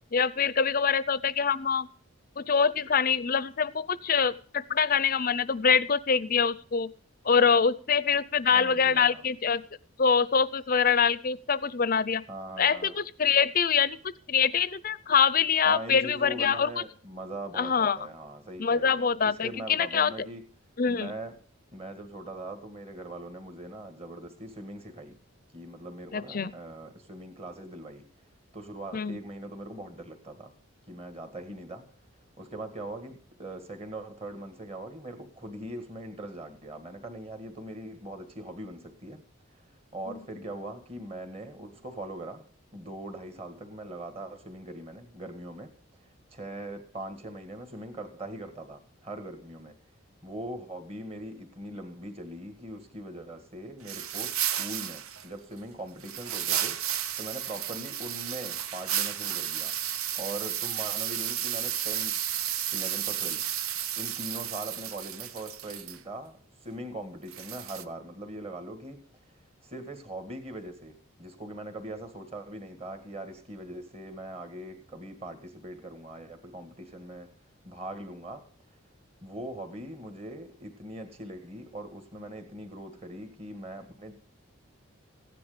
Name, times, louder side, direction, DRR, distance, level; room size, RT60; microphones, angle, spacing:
voice 1, 0.1-1.9 2.4-6.9 7.2-9.6 10.0-12.2 12.6-16.7 17.6-18.0 18.6-20.1 20.8-21.1 26.1-26.5 28.9-29.2 40.1-40.2, left 6 dB, 40° left, 0.5 m, -25 dB
voice 2, 8.5-9.3 12.3-12.9 15.6-20.4 20.9-21.3 21.7-25.2 25.5-28.0 28.5-30.5 30.9-31.9 32.4-39.2 39.5-39.6 39.9-45.7 46.3-49.8 50.2-56.8 57.2-59.8 60.1-62.1 62.4-63.4 63.9-69.0 69.6-77.3 77.6-78.5 79.2-84.1, right 1 dB, 25° right, 1.9 m, -41 dB
sound 1, 53.8-55.3 56.0-66.0 67.3-67.8, right 10 dB, 80° right, 0.8 m, -32 dB
15.5 x 10.5 x 5.1 m
head